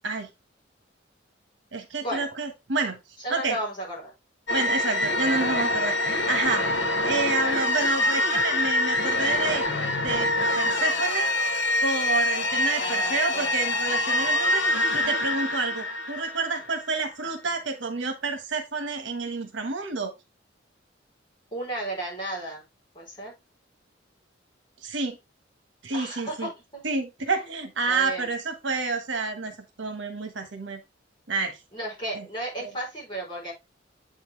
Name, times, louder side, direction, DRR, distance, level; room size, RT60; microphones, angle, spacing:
voice 1, 1.7-3.0 3.3-3.6 4.5-5.9 6.3-6.7 7.0-9.6 10.0-20.1 24.8-25.2 25.8-26.5 26.8-29.5 29.8-30.8 31.3-31.6 32.1-32.2 32.6-32.7, right 3 dB, 75° right, 7 dB, 1.3 m, -29 dB
voice 2, 3.2-4.1 12.8-13.5 21.5-22.6 22.9-23.3 25.9-26.8 27.8-28.3 31.7-33.5, right 1 dB, 25° left, -3 dB, 4.0 m, -33 dB
sound 1, 4.5-17.0, left 1 dB, 65° left, 0.9 m, -25 dB
8.1 x 4.5 x 3.3 m, 0.22 s
head